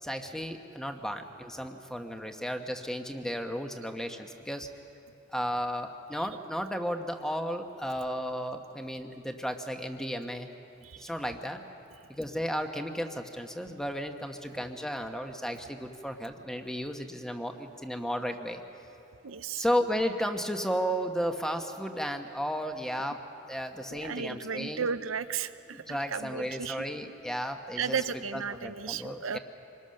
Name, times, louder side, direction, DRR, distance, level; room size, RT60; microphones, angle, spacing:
voice 1, 0.0-4.7 5.3-10.5 11.0-11.6 12.1-18.6 19.5-23.2 23.5-24.9 25.7-28.0 28.3-29.4, equal, 5° left, 5 dB, 1.1 m, -34 dB
voice 2, 19.2-19.6 23.9-26.8 27.8-29.4, right 6 dB, 90° right, 12 dB, 0.7 m, -34 dB
26.0 x 21.5 x 6.5 m, 2.8 s
head